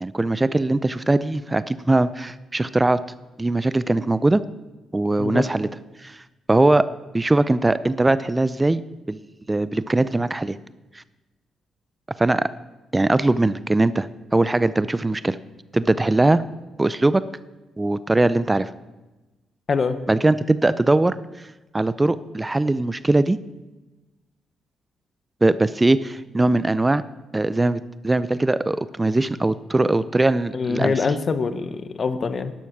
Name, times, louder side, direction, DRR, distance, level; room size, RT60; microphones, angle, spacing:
voice 1, 0.0-3.0 3.4-4.4 4.9-5.7 6.0-6.2 6.5-6.9 7.1-8.8 9.1-9.2 9.5-10.6 10.9-11.0 12.2-12.5 12.9-15.4 15.7-16.4 16.8-17.2 17.8-18.7 20.1-21.2 21.7-23.4 25.4-27.0 27.3-30.9, right 2 dB, 20° right, 16 dB, 0.5 m, -20 dB
voice 2, 30.5-32.5, left 5 dB, 50° left, 12 dB, 1.1 m, -24 dB
12.0 x 11.5 x 6.0 m, 1.1 s
supercardioid pair, 60°, 0 cm